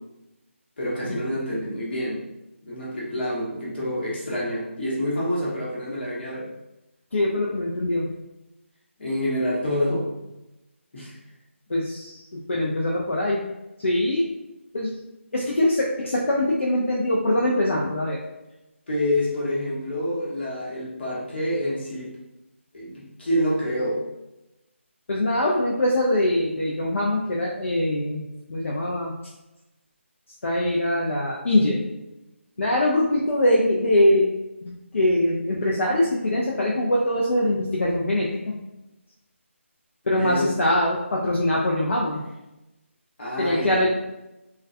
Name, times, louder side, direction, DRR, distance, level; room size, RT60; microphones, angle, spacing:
voice 1, 0.8-2.2 2.6-6.5 9.0-10.3 10.9-11.1 18.9-22.2 22.7-24.0 40.2-40.5 43.2-43.9, left 1 dB, 50° left, -5 dB, 0.9 m, -27 dB
voice 2, 7.1-8.1 11.0-11.1 11.7-13.4 13.8-14.3 14.7-14.9 15.3-18.2 25.1-28.2 28.5-29.1 30.4-31.8 32.6-34.3 34.6-38.6 40.1-42.2 43.4-43.9, left 1 dB, 65° left, -3 dB, 0.4 m, -23 dB
2.2 x 2.2 x 2.5 m, 0.96 s
figure-of-eight pair, 165°, 7 cm